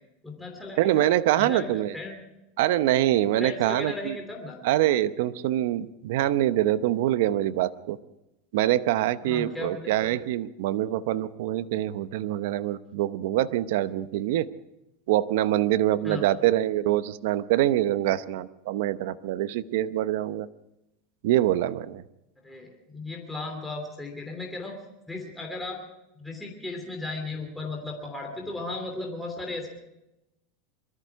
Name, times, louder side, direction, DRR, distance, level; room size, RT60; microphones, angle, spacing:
voice 1, 0.2-1.1 1.3-2.2 3.4-4.6 9.2-9.9 16.0-16.2 22.4-24.8 25.1-25.8 26.2-29.7, left 2 dB, 5° left, 1 dB, 3.0 m, -36 dB
voice 2, 0.8-1.9 2.6-4.2 4.6-8.0 8.5-14.5 15.1-20.5 21.2-22.0, right 13 dB, 70° right, 13 dB, 0.8 m, -25 dB
23.0 x 13.5 x 4.7 m, 0.91 s
supercardioid pair, 140°, 0 cm